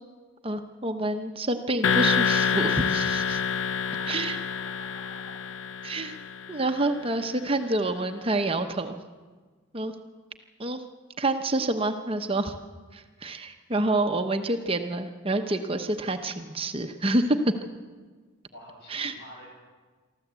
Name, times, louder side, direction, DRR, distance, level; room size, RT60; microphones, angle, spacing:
voice 1, 0.4-3.4 4.1-4.4 5.8-6.2 6.5-8.9 9.7-9.9 10.6-10.8 11.2-12.6 12.9-17.4 18.9-19.1, right 2 dB, 25° right, 6 dB, 0.9 m, -28 dB
sound 1, 1.8-6.7, left 6 dB, 75° left, 0.6 m, -27 dB
voice 2, 3.8-5.4 18.5-19.5, equal, 55° left, -1 dB, 7.9 m, -48 dB
24.0 x 14.0 x 8.2 m, 1.4 s
head